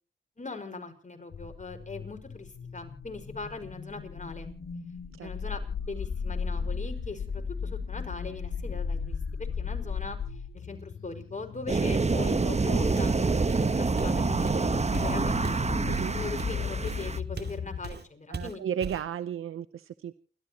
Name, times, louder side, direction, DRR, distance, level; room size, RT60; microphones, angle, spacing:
voice 1, 0.4-4.5 5.2-10.2 10.5-15.5 16.2-18.6, left 3 dB, 35° left, 5 dB, 5.2 m, -40 dB
sound 1, 1.3-17.9, left 6 dB, 75° left, 2.8 m, -36 dB
sound 2, 11.7-17.2, right 3 dB, 30° right, 1.1 m, -27 dB
Walk footsteps, 13.0-13.2 13.5-17.6 17.8-18.1 18.3-19.1, right 4 dB, 50° right, 2.4 m, -38 dB
voice 2, 18.3-20.2, right 9 dB, 85° right, 13 dB, 0.8 m, -34 dB
29.5 x 13.5 x 2.9 m, 0.39 s
cardioid pair, 50°, 21 cm